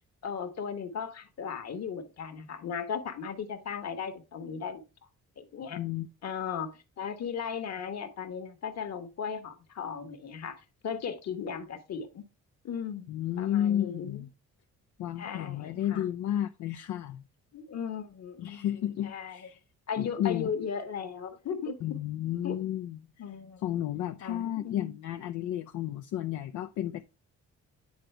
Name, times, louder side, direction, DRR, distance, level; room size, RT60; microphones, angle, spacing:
voice 1, 0.2-4.8 5.4-5.8 6.2-10.6 10.8-12.2 12.6-13.1 13.4-14.2 15.2-16.0 17.5-19.5 19.9-21.8 22.4-22.6 23.2-23.6 24.2-25.0, left 7 dB, 60° left, 1.5 m, -37 dB
voice 2, 5.8-6.1 13.1-14.3 15.0-17.3 18.4-19.6 20.0-20.5 21.8-23.0 23.6-27.0, left 11 dB, 75° left, 0.6 m, -32 dB
9.6 x 4.0 x 4.6 m
cardioid pair, 90°, 30 cm